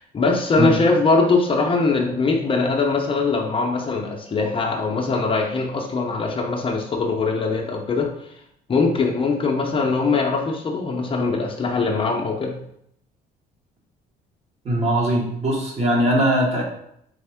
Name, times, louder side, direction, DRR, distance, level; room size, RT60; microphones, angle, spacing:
voice 1, 0.0-8.1 8.7-12.6, left 3 dB, 30° left, 1 dB, 0.6 m, -21 dB
voice 2, 14.6-16.6, right 1 dB, 40° right, -2 dB, 1.5 m, -20 dB
4.3 x 3.4 x 3.5 m, 0.74 s
cardioid pair, 110°, 17 cm